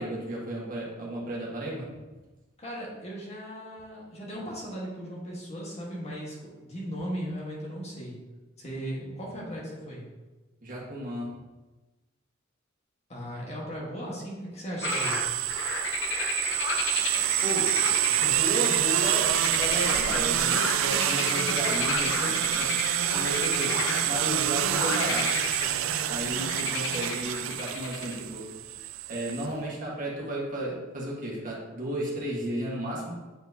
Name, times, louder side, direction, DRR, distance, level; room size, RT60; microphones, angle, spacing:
voice 1, 0.0-1.9 10.6-11.3 17.4-17.7 18.2-19.3 19.6-22.7 23.1-23.7 24.0-25.3 26.1-28.4 29.1-33.1, right 1 dB, 45° right, -4 dB, 1.5 m, -33 dB
voice 2, 2.6-8.2 8.6-10.1 13.1-15.2, equal, 35° left, -4 dB, 1.4 m, -37 dB
sound 1, 14.8-28.1, left 3 dB, 65° left, 0.8 m, -33 dB
sound 2, 14.8-29.5, right 12 dB, 85° right, 0.4 m, -27 dB
8.0 x 4.5 x 2.8 m, 1.2 s
head